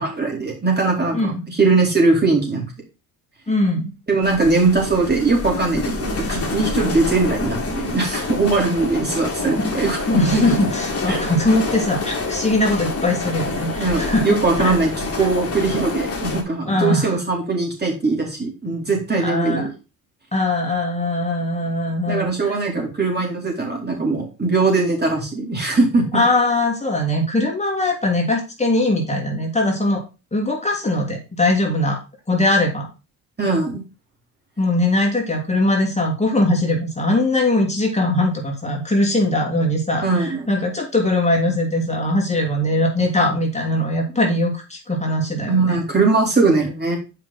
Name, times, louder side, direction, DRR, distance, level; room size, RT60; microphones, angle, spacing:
voice 1, 0.0-2.6 4.1-10.4 11.1-11.2 13.8-19.7 22.1-26.2 33.4-33.8 40.0-40.5 45.4-47.0, right 3 dB, 25° right, -1 dB, 4.2 m, -20 dB
voice 2, 3.5-3.9 9.6-9.7 10.1-14.7 16.7-17.1 19.2-19.7 20.3-22.5 26.1-30.0 30.3-32.0 32.3-32.9 34.6-45.8, left 1 dB, 15° left, 0 dB, 3.0 m, -21 dB
sound 1, 4.2-16.4, left 3 dB, 35° left, 2.6 m, -27 dB
7.4 x 5.6 x 4.3 m, 0.31 s
supercardioid pair, 70°, 40 cm